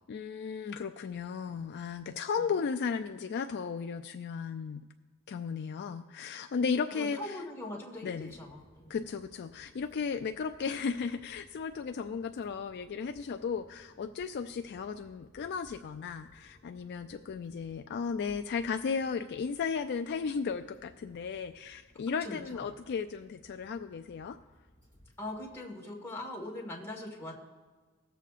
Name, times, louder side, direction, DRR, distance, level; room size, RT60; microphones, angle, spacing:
voice 1, 0.1-4.9 5.3-7.4 8.0-8.3 8.9-24.4, left 5 dB, 50° left, 6 dB, 0.3 m, -35 dB
voice 2, 6.9-9.0 22.1-22.6 25.2-27.5, left 1 dB, 10° left, -3 dB, 1.8 m, -42 dB
sound 1, 7.9-25.6, equal, 35° right, 2.6 m, -62 dB
20.0 x 7.0 x 2.5 m, 1.4 s
head